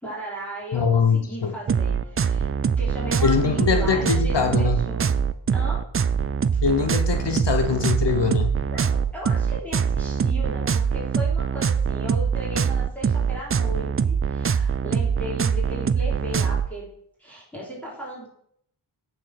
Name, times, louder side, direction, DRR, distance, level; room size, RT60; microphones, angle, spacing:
voice 1, 0.0-2.5 2.8-5.1 5.5-5.8 8.7-16.9 17.2-18.3, equal, 5° left, -6 dB, 3.6 m, -36 dB
voice 2, 0.7-1.5 3.2-4.8 6.6-8.5, left 6 dB, 55° left, 5 dB, 0.9 m, -22 dB
sound 1, 1.7-16.7, right 6 dB, 30° right, 0.4 m, -23 dB
9.4 x 4.7 x 6.0 m, 0.69 s
wide cardioid pair, 85°, 49 cm